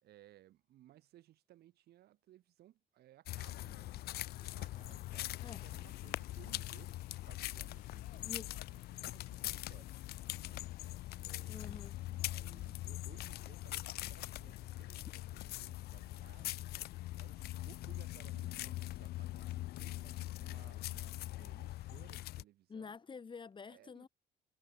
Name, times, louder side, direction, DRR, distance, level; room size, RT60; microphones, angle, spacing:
voice 1, 0.0-6.9 7.3-10.0 10.3-16.7 17.2-23.0 23.6-24.1, right 14 dB, 70° right, 5.2 m, -62 dB
sound 1, 3.3-22.4, left 16 dB, 70° left, 0.6 m, -42 dB
sound 2, 4.0-19.4, left 9 dB, 50° left, 3.9 m, -72 dB
voice 2, 11.5-12.0 22.7-24.1, left 5 dB, 30° left, 1.9 m, -48 dB
cardioid pair, 110°, 17 cm